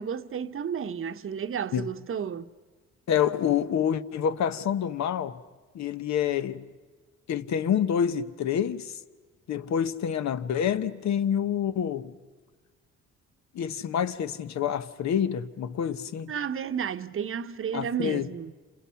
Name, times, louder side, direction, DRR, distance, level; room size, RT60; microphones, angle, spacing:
voice 1, 0.0-2.5 16.3-18.5, right 7 dB, 45° right, 0.9 m, -32 dB
voice 2, 3.1-5.4 5.7-6.7 7.3-8.9 9.5-12.1 13.5-16.3 17.7-18.3, left 8 dB, 65° left, 1.0 m, -27 dB
30.0 x 27.0 x 5.8 m
cardioid pair, 90°, 30 cm